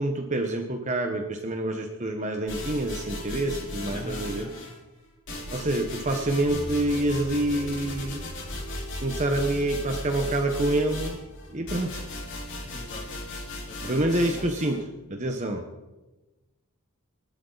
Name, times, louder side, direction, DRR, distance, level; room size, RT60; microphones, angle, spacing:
voice 1, 0.0-4.5 5.5-8.2 9.0-11.2 11.5-12.0 13.8-15.6, right 1 dB, 35° right, 4 dB, 1.3 m, -27 dB
sound 1, 2.5-4.8 5.3-14.8, left 1 dB, 55° left, 5.0 m, -36 dB
voice 2, 3.9-4.7 12.6-13.1 13.6-14.1 14.6-14.8, left 1 dB, 35° left, 2 dB, 3.0 m, -43 dB
sound 2, 6.5-12.7, left 1 dB, 5° left, 6.2 m, -45 dB
28.5 x 12.0 x 4.1 m, 1.1 s
head